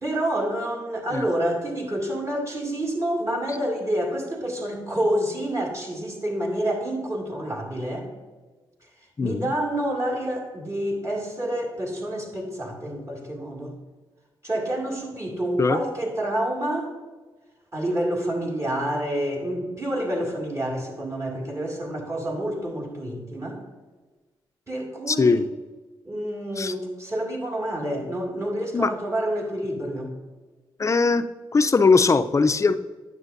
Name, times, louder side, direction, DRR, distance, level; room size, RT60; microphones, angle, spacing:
voice 1, 0.0-8.1 9.2-13.7 14.4-16.9 17.7-23.6 24.7-25.4 26.1-30.1, right 1 dB, 35° right, 0 dB, 2.3 m, -28 dB
voice 2, 9.2-9.5 15.6-15.8 25.1-25.4 26.6-26.7 28.7-28.9 30.8-31.3 31.5-32.7, left 4 dB, 35° left, 11 dB, 0.5 m, -20 dB
9.6 x 7.3 x 2.6 m, 1.3 s
cardioid pair, 55°, 9 cm